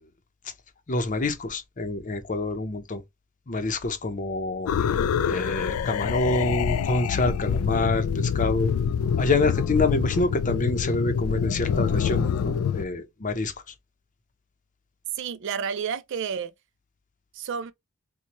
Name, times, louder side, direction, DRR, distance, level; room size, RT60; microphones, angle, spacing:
voice 1, 0.9-3.0 3.5-4.9 5.3-8.7 9.2-13.5, left 2 dB, 35° left, 0.7 m, -26 dB
sound 1, 4.7-12.8, left 7 dB, 80° left, 0.3 m, -26 dB
voice 2, 15.1-16.5 17.3-17.7, right 7 dB, 55° right, 0.4 m, -30 dB
4.3 x 2.2 x 2.9 m
head